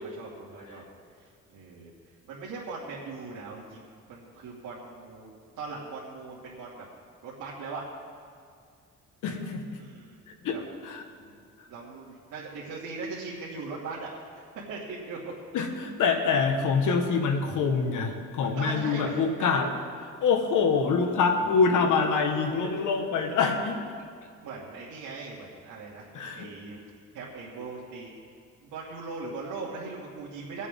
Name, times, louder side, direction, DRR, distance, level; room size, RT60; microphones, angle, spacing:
voice 1, 0.2-0.8 1.1-1.9 2.2-5.3 5.6-6.8 7.2-7.8 9.8-10.2 10.5-10.6 11.2-14.3 14.7-15.3 18.6-19.2 24.4-26.1 26.3-26.8 27.1-28.1 28.6-30.7, right 4 dB, 85° right, -8 dB, 2.6 m, -39 dB
voice 2, 9.2-9.6 10.4-10.6 10.8-11.0 11.6-11.7 15.5-19.7 20.2-23.8 26.1-26.5, left 5 dB, 80° left, 4 dB, 1.6 m, -25 dB
22.5 x 8.2 x 3.8 m, 2.3 s
cardioid pair, 90°, 30 cm